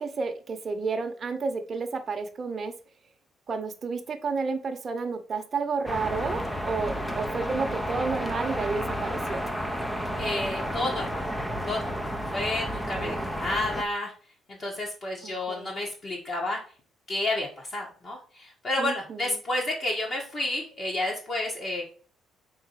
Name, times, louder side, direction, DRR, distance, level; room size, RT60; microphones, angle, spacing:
voice 1, 0.0-2.7 3.5-9.4 13.0-13.3 15.2-15.7 18.8-19.4, right 4 dB, 30° right, 6 dB, 1.0 m, -31 dB
sound 1, 5.9-13.8, equal, 5° left, 0.6 m, -31 dB
voice 2, 10.2-11.3 11.7-14.1 14.5-16.6 17.1-21.8, left 1 dB, 35° left, -2 dB, 1.5 m, -31 dB
4.8 x 4.3 x 5.8 m, 0.41 s
cardioid pair, 155°, 0 cm